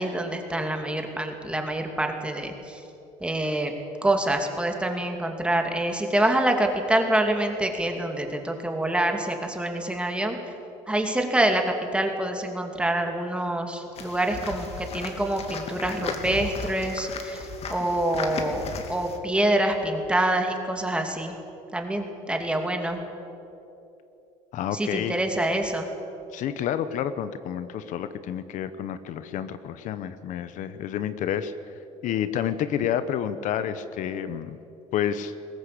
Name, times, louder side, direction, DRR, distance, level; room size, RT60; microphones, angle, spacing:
voice 1, 0.0-2.8 3.2-3.7 4.0-10.4 10.9-21.3 21.7-23.0 24.7-25.9, right 1 dB, 5° right, 4 dB, 2.6 m, -26 dB
sound 1, 14.0-19.2, left 5 dB, 45° left, 2.4 m, -36 dB
voice 2, 24.5-25.2 26.3-31.5 32.0-34.6 34.9-35.3, left 9 dB, 65° left, 12 dB, 1.0 m, -29 dB
21.0 x 17.5 x 8.5 m, 2.8 s
cardioid pair, 125°, 14 cm